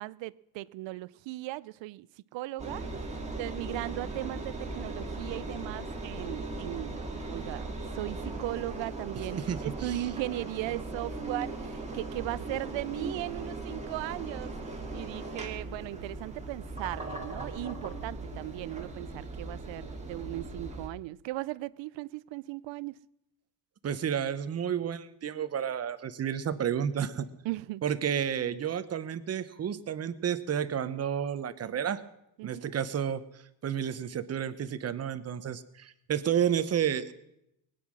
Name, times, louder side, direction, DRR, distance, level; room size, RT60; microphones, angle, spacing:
voice 1, 0.0-2.1 2.3-23.0 27.4-27.8 32.4-32.7, right 17 dB, 80° right, 0.6 m, -38 dB
Engine, 2.6-20.9, right 2 dB, 15° right, 2.1 m, -38 dB
voice 2, 9.3-10.0 23.8-27.3 27.8-32.0 32.4-33.2 33.6-37.1, right 8 dB, 35° right, 0.9 m, -31 dB
21.0 x 9.5 x 6.2 m
cardioid pair, 140°, 44 cm